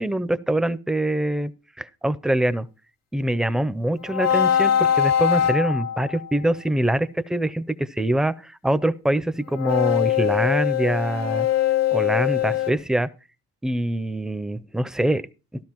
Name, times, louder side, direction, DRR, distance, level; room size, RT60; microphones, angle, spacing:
voice 1, 0.0-1.5 1.8-2.7 3.1-11.5 11.9-13.1 13.6-15.2, right 1 dB, ahead, 0.5 m, -24 dB
sound 1, 4.1-6.3 9.5-12.7, left 10 dB, 60° left, 1.0 m, -22 dB
14.0 x 12.5 x 2.9 m
cardioid pair, 90°, 30 cm